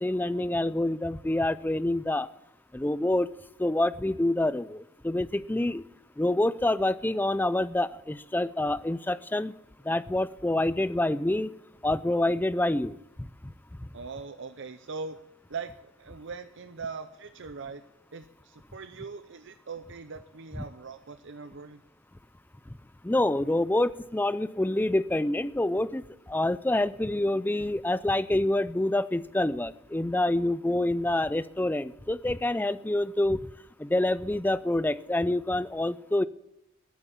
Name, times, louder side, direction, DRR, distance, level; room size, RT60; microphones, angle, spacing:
voice 1, 0.0-2.3 2.7-3.3 3.6-5.8 6.2-9.5 9.8-11.5 11.8-13.5 13.8-13.9 23.0-33.4 33.8-36.2, left 1 dB, 10° left, 16 dB, 0.4 m, -27 dB
voice 2, 13.9-15.2 15.5-17.8 18.1-21.8, right 4 dB, 60° right, 9 dB, 0.7 m, -41 dB
14.5 x 8.1 x 7.3 m, 0.84 s
head